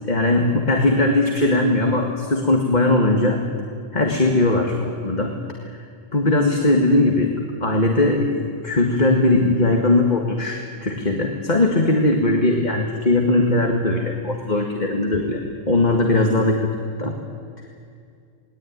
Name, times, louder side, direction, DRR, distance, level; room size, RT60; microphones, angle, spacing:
voice 1, 0.0-3.4 3.9-5.4 6.1-7.3 7.6-16.7 17.0-17.2, left 2 dB, 35° left, 2 dB, 2.0 m, -19 dB
28.5 x 20.5 x 9.4 m, 2.3 s
omnidirectional pair, 1.3 m